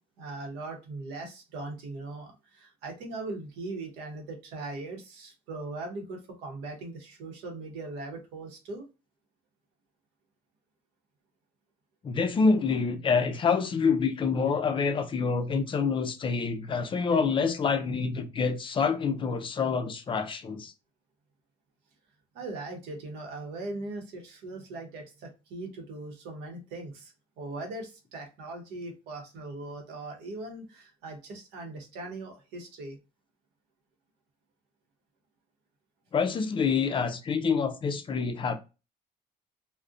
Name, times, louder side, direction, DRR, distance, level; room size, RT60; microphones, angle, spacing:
voice 1, 0.2-8.8 22.3-33.0, right 2 dB, 90° right, 0.8 m, -40 dB
voice 2, 12.0-20.7 36.1-38.5, left 5 dB, 30° left, 0.4 m, -27 dB
2.5 x 2.0 x 2.4 m
cardioid pair, 110°, 17 cm